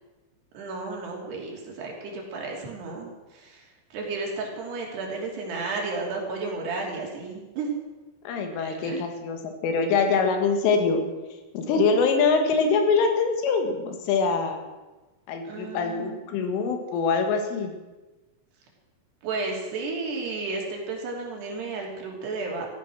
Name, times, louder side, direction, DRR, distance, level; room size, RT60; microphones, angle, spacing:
voice 1, 0.5-3.6 3.9-7.8 8.6-9.0 15.4-16.2 19.2-22.7, right 3 dB, 60° right, -1 dB, 4.8 m, -33 dB
voice 2, 8.3-11.0 11.5-14.6 15.3-17.7, left 4 dB, 90° left, 5 dB, 4.4 m, -24 dB
15.0 x 13.5 x 6.3 m, 1.2 s
omnidirectional pair, 5.5 m